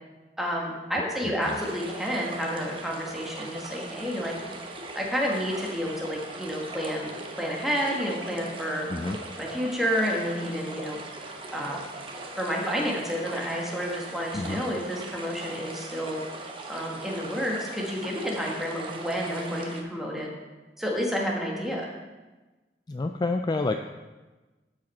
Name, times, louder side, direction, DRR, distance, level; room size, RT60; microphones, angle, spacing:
voice 1, 0.4-4.3 4.9-8.9 9.4-11.0 11.5-11.8 12.4-16.2 16.7-20.3 20.8-21.9, equal, ahead, -2 dB, 1.5 m, -30 dB
voice 2, 1.2-1.6 8.9-9.2 14.3-14.6 22.9-23.8, left 3 dB, 25° left, 6 dB, 0.3 m, -29 dB
sound 1, 1.4-19.8, right 2 dB, 30° right, 1.0 m, -40 dB
13.0 x 5.0 x 4.4 m, 1.2 s
head